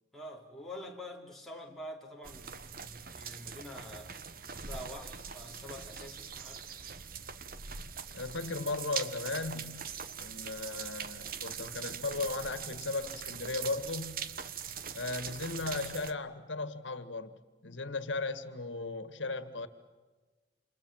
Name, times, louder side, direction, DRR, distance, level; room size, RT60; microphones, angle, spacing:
voice 1, 0.1-4.2 4.7-6.6, left 1 dB, ahead, 3.6 m, -46 dB
sound 1, 2.2-16.1, right 7 dB, 50° right, 1.2 m, -42 dB
voice 2, 8.1-9.9 10.2-14.3 14.9-17.3 17.6-19.7, left 3 dB, 90° left, 1.9 m, -36 dB
29.0 x 27.5 x 7.4 m
head